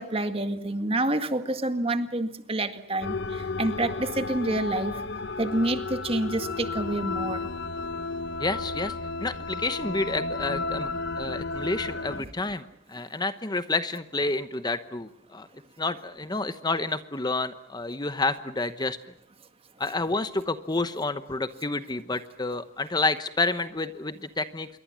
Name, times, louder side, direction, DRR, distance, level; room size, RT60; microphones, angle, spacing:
voice 1, 0.0-5.0 5.4-7.5, right 2 dB, 30° right, 9 dB, 1.9 m, -28 dB
sound 1, 3.0-12.2, left 3 dB, 60° left, 1.0 m, -33 dB
voice 2, 8.4-8.9 9.2-10.9 11.2-12.6 12.9-15.5 15.8-19.0 19.8-24.7, left 3 dB, 20° left, 11 dB, 0.9 m, -29 dB
27.5 x 23.0 x 7.5 m, 0.75 s
head